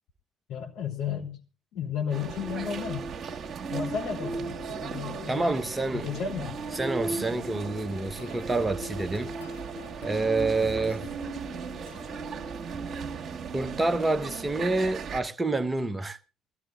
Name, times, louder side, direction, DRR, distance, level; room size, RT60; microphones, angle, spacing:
voice 1, 0.5-1.4 1.7-3.1 3.7-5.4 5.9-6.6, left 7 dB, 55° left, 3.3 m, -33 dB
sound 1, 2.1-15.2, right 4 dB, 35° right, 2.0 m, -36 dB
voice 2, 5.3-6.1 6.8-9.3 10.0-11.1 13.5-16.2, right 2 dB, 20° right, 1.0 m, -28 dB
sound 2, 7.2-12.6, left 8 dB, 80° left, 0.6 m, -49 dB
21.0 x 15.0 x 2.5 m
figure-of-eight pair, 55°, 0 cm